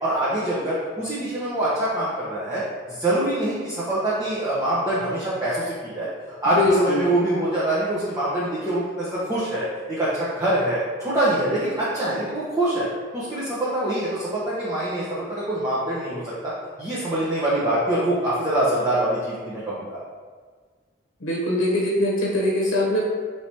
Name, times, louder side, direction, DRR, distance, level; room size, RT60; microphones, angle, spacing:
voice 1, 0.0-2.6 2.9-6.1 6.4-12.9 13.1-16.5 16.8-20.0, right 1 dB, 20° right, -10 dB, 0.7 m, -24 dB
voice 2, 6.6-7.1 21.2-23.0, left 1 dB, 85° left, -3 dB, 0.8 m, -22 dB
4.6 x 3.2 x 2.8 m, 1.5 s
head